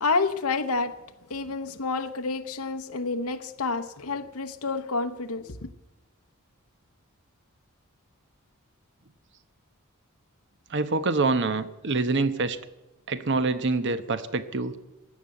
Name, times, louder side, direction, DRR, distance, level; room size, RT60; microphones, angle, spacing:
voice 1, 0.0-1.0 1.3-5.6, left 3 dB, 90° left, 0.9 m, -29 dB
voice 2, 10.7-12.6 13.1-14.8, right 3 dB, 55° right, 1.1 m, -26 dB
15.5 x 11.0 x 7.8 m
head